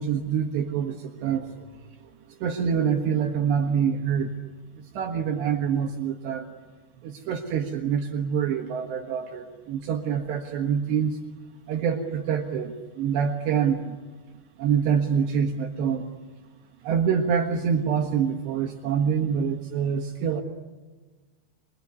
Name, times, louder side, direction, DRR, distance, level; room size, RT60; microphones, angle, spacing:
voice 1, 0.0-1.5 2.4-4.3 5.0-6.5 7.0-11.2 11.7-14.0 14.6-16.1 16.8-20.4, right 7 dB, 70° right, 1 dB, 3.6 m, -26 dB
27.0 x 22.0 x 9.6 m, 1.3 s
omnidirectional pair, 5.3 m